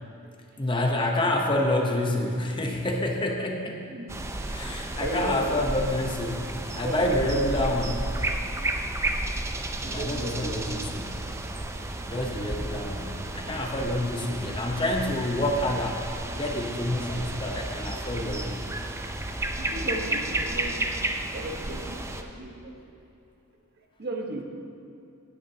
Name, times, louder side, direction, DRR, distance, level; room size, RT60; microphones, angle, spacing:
voice 1, 0.6-3.9 4.5-7.9 9.8-11.2 12.1-18.7, left 1 dB, 25° left, 2 dB, 0.8 m, -28 dB
sound 1, 4.1-22.2, right 2 dB, 15° right, 0.4 m, -32 dB
voice 2, 5.0-5.6 6.8-7.5 9.8-10.8 19.6-23.0 23.8-24.4, right 1 dB, 50° right, 2 dB, 1.1 m, -36 dB
16.0 x 9.5 x 2.8 m, 2.7 s
head